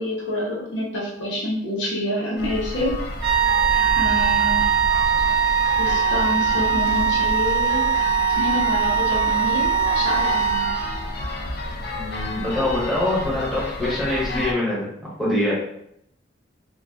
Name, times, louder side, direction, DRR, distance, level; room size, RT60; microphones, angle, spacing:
voice 1, 0.0-3.0 4.0-4.7 5.8-7.9 8.3-10.7, left 1 dB, 80° left, -3 dB, 0.7 m, -27 dB
sound 1, 2.4-14.5, left 2 dB, 60° left, 0.3 m, -30 dB
sound 2, 3.2-11.1, right 7 dB, 30° right, 0.3 m, -21 dB
voice 2, 11.9-15.5, left 1 dB, ahead, -8 dB, 0.7 m, -24 dB
2.3 x 2.2 x 2.4 m, 0.76 s
head